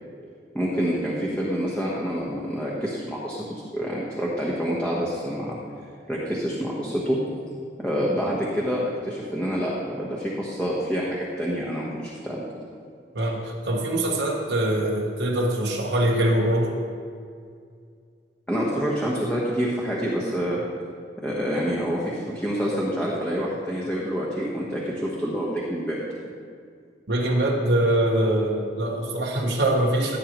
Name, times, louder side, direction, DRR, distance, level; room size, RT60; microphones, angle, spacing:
voice 1, 0.5-3.4 3.7-5.6 6.1-7.2 7.8-12.4 18.5-20.6 21.2-26.0, equal, 5° left, -6 dB, 1.3 m, -27 dB
voice 2, 13.1-16.8 27.1-30.2, right 1 dB, 75° right, -1 dB, 1.2 m, -23 dB
15.5 x 8.6 x 3.1 m, 2.2 s
head